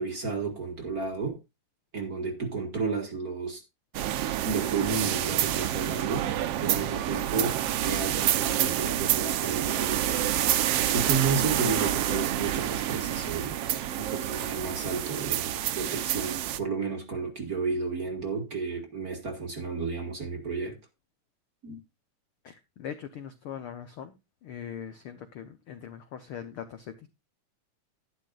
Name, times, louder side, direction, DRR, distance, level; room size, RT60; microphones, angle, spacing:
voice 1, 0.0-1.4 1.9-3.6 4.4-20.8 21.6-21.8, right 4 dB, 35° right, 1.8 m, -32 dB
sound 1, 3.9-16.6, right 12 dB, 75° right, 1.4 m, -28 dB
voice 2, 22.4-24.2 24.4-27.1, left 8 dB, 75° left, 1.2 m, -41 dB
12.0 x 11.5 x 2.4 m
omnidirectional pair, 3.7 m